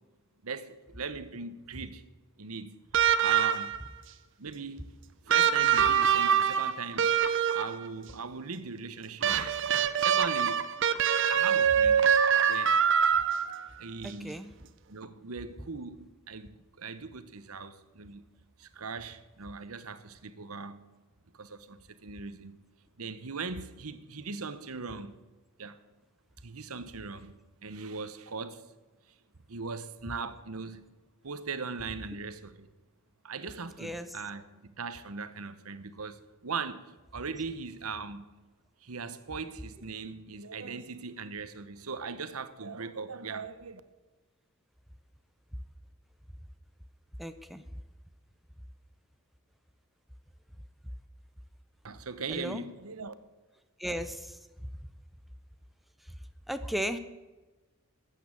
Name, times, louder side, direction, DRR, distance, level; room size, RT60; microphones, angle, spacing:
voice 1, 0.4-2.0 2.4-2.9 3.2-3.8 4.4-4.9 5.3-7.1 7.5-10.6 11.3-12.1 12.5-12.8 13.8-14.5 14.9-18.2 18.6-20.8 21.3-22.6 23.0-25.2 25.6-25.8 26.4-28.7 29.1-29.2 29.5-31.0 31.2-32.7 33.2-38.3 38.8-43.8 51.8-53.1, right 4 dB, 90° right, 1.0 m, -39 dB
sound 1, 2.9-3.9 5.3-7.9 9.2-13.7 15.0-15.1, right 8 dB, 60° right, 0.8 m, -24 dB
voice 2, 14.0-14.5 33.8-34.1 47.2-47.6 52.3-52.6 53.8-54.4 56.5-57.0, equal, ahead, 0.6 m, -35 dB
13.5 x 8.5 x 8.4 m
head